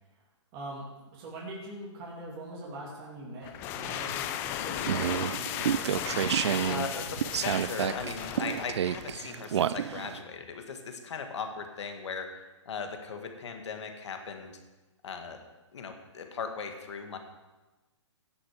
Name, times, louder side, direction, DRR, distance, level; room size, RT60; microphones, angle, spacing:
voice 1, 0.5-6.1, right 1 dB, 25° right, -4 dB, 2.6 m, -43 dB
sound 1, 3.4-9.1, left 11 dB, 15° left, 0.3 m, -35 dB
sound 2, 4.8-10.2, right 9 dB, 65° right, 0.4 m, -30 dB
voice 2, 6.6-12.3 12.7-14.6 15.0-15.4 15.7-17.2, left 5 dB, 65° left, 5 dB, 1.7 m, -38 dB
17.0 x 6.2 x 5.0 m, 1.1 s
hypercardioid pair, 150°, 16 cm